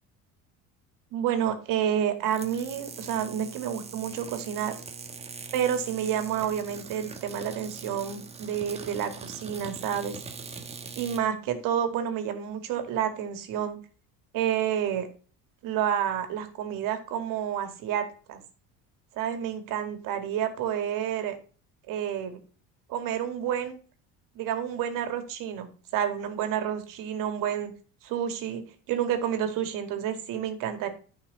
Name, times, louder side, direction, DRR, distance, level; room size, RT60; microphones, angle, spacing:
voice 1, 1.1-4.7 5.5-10.1 11.0-13.8 14.3-15.1 15.6-18.4 19.2-21.3 21.9-22.4 22.9-23.8 24.4-27.7 28.0-28.6 28.9-30.9, right 9 dB, 60° right, 7 dB, 2.2 m, -29 dB
sound 1, 2.2-11.2, right 4 dB, 15° right, 1.1 m, -42 dB
14.0 x 5.5 x 4.2 m, 0.39 s
cardioid pair, 155°, 36 cm